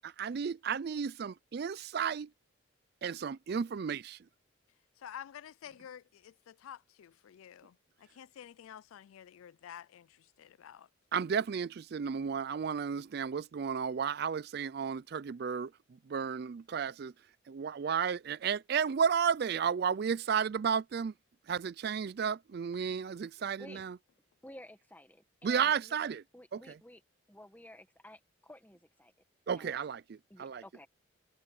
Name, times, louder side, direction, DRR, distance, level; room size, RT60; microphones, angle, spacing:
voice 1, 0.0-2.3 3.0-4.2 11.1-15.7 16.1-17.1 17.5-21.1 21.5-24.0 25.4-26.2 26.5-26.8 29.5-30.6, right 7 dB, 50° right, 0.3 m, -33 dB
voice 2, 5.0-10.9, left 9 dB, 90° left, 0.3 m, -50 dB
voice 3, 24.4-26.0 26.3-27.0 27.3-29.1 29.5-29.8 30.3-30.9, left 1 dB, 10° left, 1.7 m, -53 dB
head